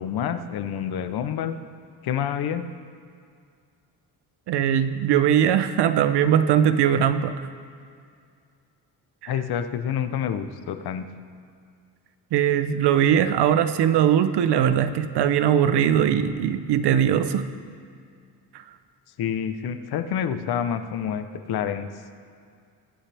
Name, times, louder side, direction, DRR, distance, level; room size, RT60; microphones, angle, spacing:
voice 1, 0.0-1.6 2.0-2.6 9.3-11.1 19.2-21.9, left 8 dB, 65° left, 9 dB, 0.9 m, -28 dB
voice 2, 4.5-7.3 9.2-9.3 12.3-17.5, right 9 dB, 75° right, 11 dB, 0.8 m, -20 dB
22.5 x 8.8 x 3.5 m, 2.3 s
cardioid pair, 135°, 41 cm